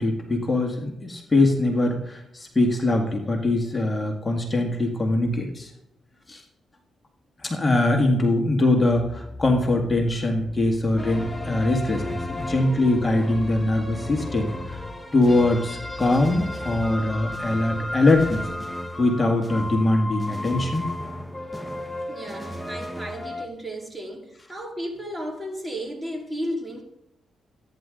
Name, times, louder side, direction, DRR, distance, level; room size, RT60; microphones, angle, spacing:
voice 1, 0.0-5.7 6.3-6.4 7.4-14.8 15.1-18.5 19.0-20.8, left 2 dB, 25° left, 2 dB, 2.0 m, -22 dB
Bass guitar, 8.9-18.5, left 3 dB, 40° left, 5.5 m, -40 dB
sound 1, 11.0-23.5, left 1 dB, 5° left, 1.3 m, -34 dB
voice 2, 22.1-26.8, equal, 15° right, 1 dB, 2.7 m, -34 dB
13.5 x 9.8 x 3.9 m, 0.81 s
cardioid pair, 65°, 0 cm